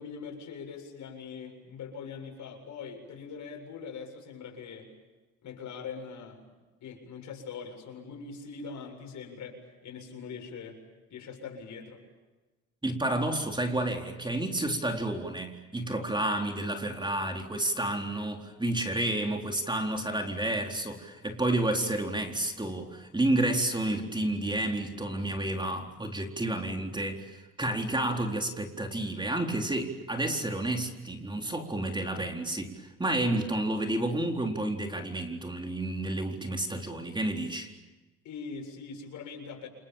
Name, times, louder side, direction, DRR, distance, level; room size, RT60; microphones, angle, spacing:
voice 1, 0.0-4.9 5.4-6.4 6.8-10.8 11.1-12.0 38.2-39.7, left 5 dB, 70° left, 3 dB, 7.6 m, -42 dB
voice 2, 12.8-37.7, right 1 dB, 15° right, 3 dB, 4.0 m, -30 dB
29.5 x 27.5 x 7.3 m, 1.2 s
cardioid pair, 90°, 30 cm